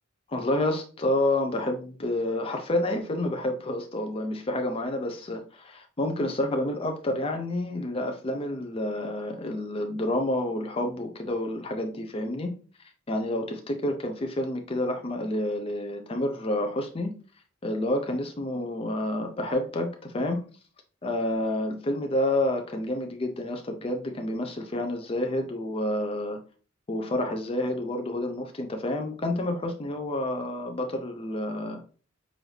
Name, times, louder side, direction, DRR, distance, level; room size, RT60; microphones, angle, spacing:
voice 1, 0.3-12.5 12.8-17.1 17.6-20.4 21.0-26.4 26.9-31.8, left 1 dB, 30° left, 5 dB, 0.5 m, -29 dB
6.2 x 2.6 x 3.2 m, 0.38 s
head